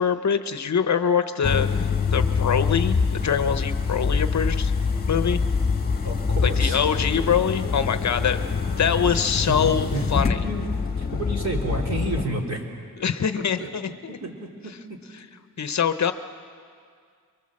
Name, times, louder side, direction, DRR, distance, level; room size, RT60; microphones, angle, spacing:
voice 1, 0.0-4.7 5.1-5.4 6.4-8.4 8.8-10.4 13.0-14.2 14.7-14.8 15.1-15.3 15.6-16.1, left 7 dB, 50° left, 10 dB, 0.8 m, -24 dB
sound 1, 1.4-12.2, left 5 dB, 25° left, 1.5 m, -25 dB
voice 2, 6.0-6.8 8.2-8.3 9.5-10.1 10.4-10.7 10.9-12.6 14.2-15.0, right 2 dB, 45° right, 1 dB, 3.3 m, -30 dB
24.5 x 23.5 x 7.5 m, 2.1 s
wide cardioid pair, 180°, 37 cm